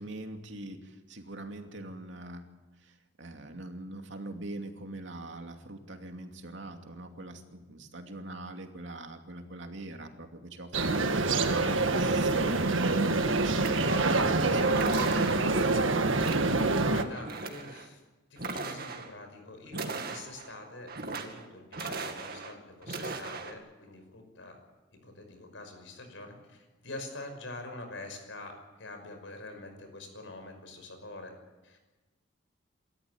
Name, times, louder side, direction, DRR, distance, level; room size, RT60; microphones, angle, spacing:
voice 1, 0.0-2.5 2.8-15.2, right 1 dB, 65° right, 4 dB, 2.6 m, -42 dB
sound 1, 10.7-17.0, right 3 dB, 80° right, 1.7 m, -26 dB
sound 2, 13.6-14.2 14.7-15.6 16.2-16.8 17.1-17.9 18.4-19.1 19.7-20.5 20.9-21.4 21.7-22.5 22.8-23.5, right 4 dB, 50° right, 2.3 m, -38 dB
voice 2, 16.8-18.0 18.3-24.6 24.9-28.5 28.8-31.3 31.6-31.8, left 2 dB, 75° left, 6 dB, 5.8 m, -45 dB
27.0 x 13.5 x 8.5 m, 1.2 s
head